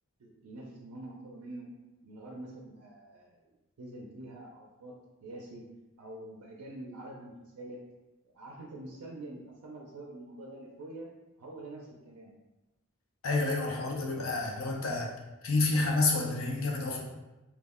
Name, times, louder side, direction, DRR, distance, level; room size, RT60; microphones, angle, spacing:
voice 1, 0.2-1.7 2.0-4.9 5.2-5.6 6.0-7.8 8.2-11.1 11.4-12.3, right 1 dB, 85° right, -1 dB, 0.4 m, -46 dB
voice 2, 13.2-15.1 15.4-17.0, left 3 dB, 65° left, -1 dB, 0.6 m, -29 dB
2.3 x 2.1 x 3.5 m, 1.1 s
head